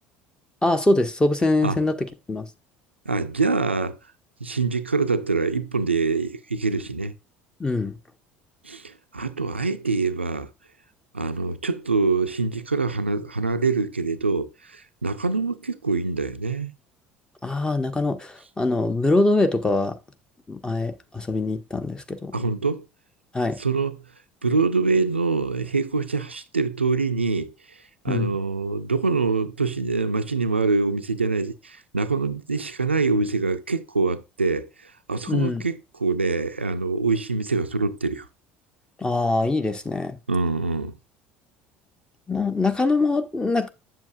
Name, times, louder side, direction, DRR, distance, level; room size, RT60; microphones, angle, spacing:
voice 1, 0.6-2.5 7.6-8.0 17.4-20.0 20.5-22.4 23.3-23.6 28.1-28.4 35.3-35.6 39.0-40.2 42.3-43.7, left 2 dB, 15° left, 0.9 m, -23 dB
voice 2, 3.1-4.0 4.4-7.1 8.6-10.5 11.1-16.7 22.3-22.8 23.6-23.9 24.4-38.3 40.3-40.9, right 4 dB, 85° right, 0.4 m, -25 dB
7.6 x 7.3 x 2.4 m
figure-of-eight pair, 65°, 6 cm